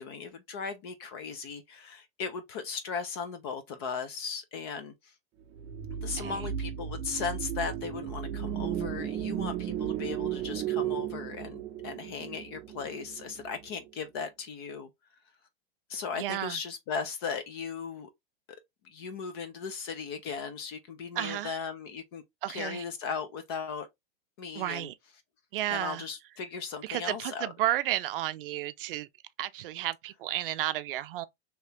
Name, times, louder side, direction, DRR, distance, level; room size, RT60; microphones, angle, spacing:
voice 1, 0.0-4.9 6.0-14.9 15.9-18.1 18.8-23.9 24.4-24.9 25.7-27.5, left 5 dB, 25° left, 0.3 m, -37 dB
sound 1, 5.6-13.9, right 10 dB, 20° right, 0.6 m, -35 dB
voice 2, 6.2-6.5 16.2-16.6 21.1-21.6 22.4-22.8 24.5-24.9 25.5-26.1 26.8-29.1 29.4-31.3, right 14 dB, 65° right, 0.5 m, -32 dB
2.9 x 2.7 x 3.3 m
supercardioid pair, 160°, 30 cm